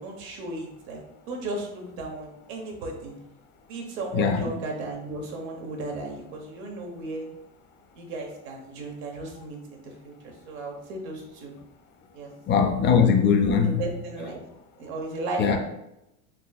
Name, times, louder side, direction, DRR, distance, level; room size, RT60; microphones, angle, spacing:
voice 1, 0.0-3.1 3.7-7.3 7.9-11.5 12.1-12.3 13.6-14.4 14.8-15.6, right 2 dB, 75° right, 1.1 m, -35 dB
voice 2, 4.1-4.5 12.5-13.8 15.4-15.6, left 6 dB, 30° left, 0.5 m, -20 dB
4.2 x 3.1 x 2.3 m
hypercardioid pair, 90°, 40 cm